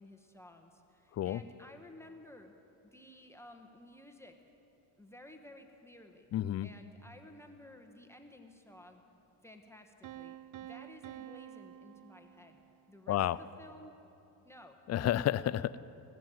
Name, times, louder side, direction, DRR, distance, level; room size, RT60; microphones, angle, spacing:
voice 1, 0.0-2.5 2.9-4.3 5.0-6.3 6.6-9.0 9.4-12.6 12.9-13.9 14.4-14.8, left 1 dB, 5° left, 4 dB, 1.4 m, -54 dB
voice 2, 6.3-6.7 13.1-13.4 14.9-15.8, left 12 dB, 35° left, 18 dB, 0.4 m, -30 dB
Piano, 10.0-12.9, right 12 dB, 40° right, 0.5 m, -49 dB
17.5 x 7.5 x 9.1 m, 2.9 s
supercardioid pair, 70°, 49 cm